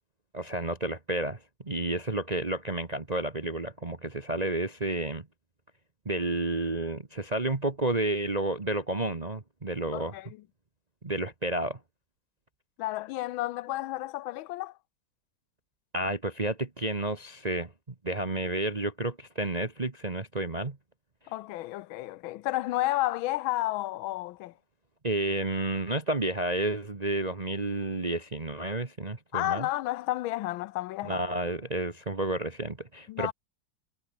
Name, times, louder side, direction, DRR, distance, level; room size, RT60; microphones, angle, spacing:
voice 1, 0.3-1.4 1.6-5.2 6.0-10.1 11.0-11.8 15.9-17.7 18.0-20.8 25.0-29.7 31.0-33.3, right 2 dB, 20° right, 1.4 m, -31 dB
voice 2, 9.9-10.3 12.8-14.7 21.3-24.5 29.3-31.2 33.1-33.3, left 17 dB, 85° left, 1.4 m, -31 dB
omnidirectional pair, 2.1 m